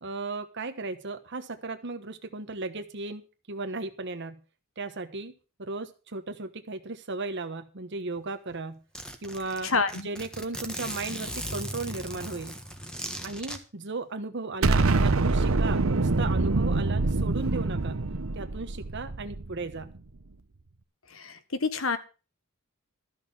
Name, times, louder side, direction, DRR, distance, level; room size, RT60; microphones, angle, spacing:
voice 1, 0.0-3.2 3.5-4.4 4.8-5.3 5.6-8.8 9.2-9.7 10.0-12.6 13.2-18.0 18.3-19.9, right 3 dB, 60° right, 7 dB, 1.2 m, -35 dB
Zipper (clothing), 8.2-8.3 8.5-8.6 8.9-13.6, equal, 5° left, 1.5 m, -38 dB
voice 2, 9.6-10.1 21.1-22.0, left 4 dB, 75° left, 11 dB, 1.5 m, -28 dB
Explosion, 14.6-19.8, right 3 dB, 80° right, 0.9 m, -25 dB
13.5 x 6.5 x 7.3 m, 0.33 s
head